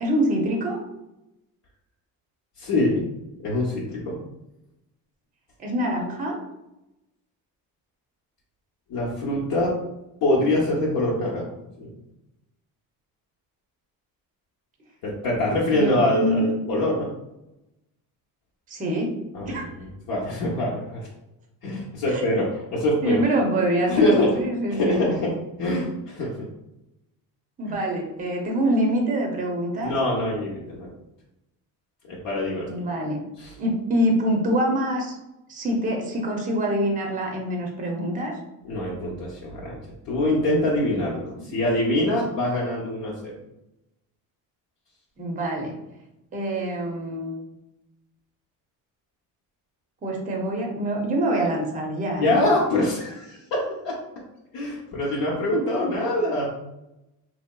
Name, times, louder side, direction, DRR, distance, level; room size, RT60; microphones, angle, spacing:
voice 1, 0.0-0.8 5.6-6.4 15.7-16.4 18.7-19.1 19.5-19.7 22.1-22.2 23.0-25.0 27.6-29.9 32.7-33.2 33.6-35.2 35.5-38.3 41.5-41.6 45.2-45.7 46.3-47.4 50.0-52.4, right 1 dB, 20° right, 1 dB, 0.6 m, -25 dB
voice 2, 2.6-3.0 3.4-4.2 8.9-9.7 10.2-11.4 11.8-12.0 15.0-17.2 19.3-21.1 21.6-23.2 23.9-25.3 25.6-26.5 29.8-30.9 32.1-32.7 33.4-33.5 38.6-39.8 40.0-43.3 52.2-54.0 54.5-56.5, left 1 dB, 65° left, -5 dB, 0.8 m, -24 dB
3.0 x 2.8 x 2.2 m, 0.90 s
cardioid pair, 115°, 39 cm